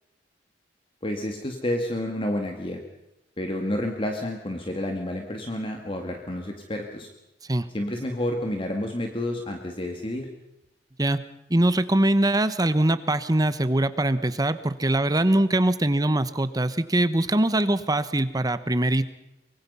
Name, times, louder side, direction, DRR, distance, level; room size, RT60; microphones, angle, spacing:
voice 1, 1.0-2.8 3.4-7.1 7.7-10.3, left 1 dB, 30° left, 3 dB, 2.0 m, -30 dB
voice 2, 11.5-19.0, right 1 dB, 20° right, 13 dB, 1.1 m, -22 dB
24.5 x 23.0 x 5.6 m, 0.89 s
head